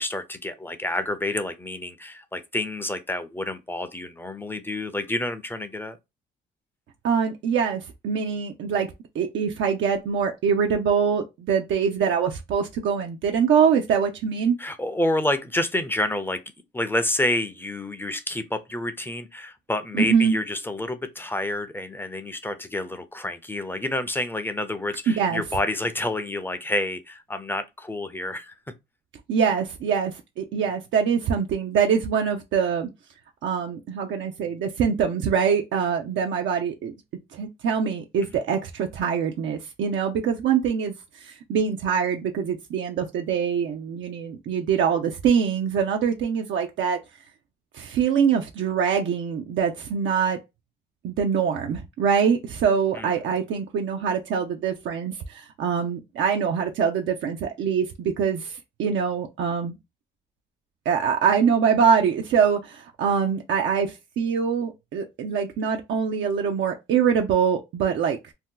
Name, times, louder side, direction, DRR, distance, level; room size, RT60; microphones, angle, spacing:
voice 1, 0.0-6.0 14.6-16.4 16.7-28.5 52.9-53.1, left 1 dB, 10° left, 0.5 m, -28 dB
voice 2, 7.0-8.9 9.1-14.6 19.9-20.3 25.1-25.4 29.3-32.9 33.4-36.9 37.3-47.0 47.7-50.4 51.0-59.8 60.9-68.3, right 7 dB, 75° right, 0.6 m, -24 dB
2.8 x 2.2 x 3.6 m
cardioid pair, 90°, 20 cm